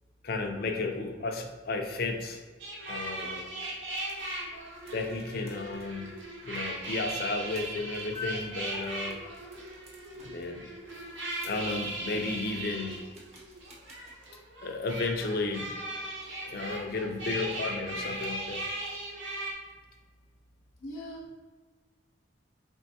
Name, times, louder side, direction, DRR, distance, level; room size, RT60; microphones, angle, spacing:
voice 1, 0.2-2.4 2.9-3.5 4.9-6.1 6.5-9.2 10.2-10.6 11.4-13.0 14.6-15.7 16.5-18.6, left 3 dB, 55° left, 4 dB, 0.4 m, -33 dB
sound 1, 2.6-19.5, right 1 dB, 85° right, 0.8 m, -38 dB
sound 2, 3.7-14.1, left 2 dB, 35° right, 0.8 m, -50 dB
voice 2, 20.8-21.4, equal, 90° left, -2 dB, 0.8 m, -41 dB
4.4 x 3.0 x 2.7 m, 1.4 s
head